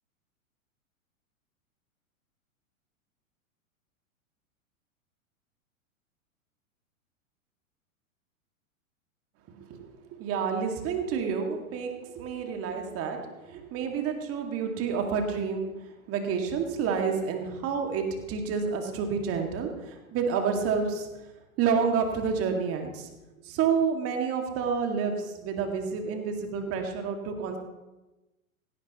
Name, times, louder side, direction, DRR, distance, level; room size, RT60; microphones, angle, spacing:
voice 1, 9.5-21.1 21.6-23.1 23.4-27.6, right 6 dB, 35° right, 4 dB, 2.2 m, -29 dB
17.5 x 16.5 x 3.1 m, 1.1 s
figure-of-eight pair, 100°, 42 cm